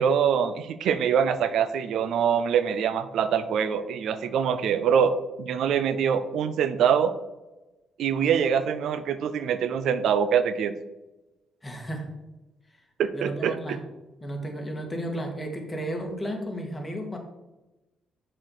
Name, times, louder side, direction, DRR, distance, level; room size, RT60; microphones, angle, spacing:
voice 1, 0.0-7.1 8.0-10.7 13.0-13.8, right 7 dB, 75° right, 12 dB, 0.5 m, -24 dB
voice 2, 11.6-12.1 13.1-13.8 14.2-17.2, right 1 dB, 20° left, 2 dB, 1.7 m, -33 dB
6.4 x 4.3 x 6.3 m, 1.0 s
cardioid pair, 90°, 0 cm